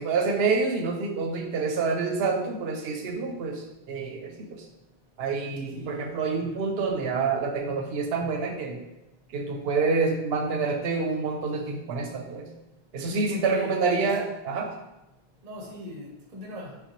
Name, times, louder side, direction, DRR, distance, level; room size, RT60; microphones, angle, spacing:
voice 1, 0.0-4.6 5.2-8.8 9.3-12.5 12.9-14.7, right 4 dB, 75° right, 2 dB, 0.8 m, -27 dB
voice 2, 5.7-6.1 13.1-13.7 15.4-16.7, left 1 dB, 45° right, -1 dB, 0.8 m, -39 dB
5.2 x 2.2 x 3.0 m, 0.96 s
omnidirectional pair, 1.0 m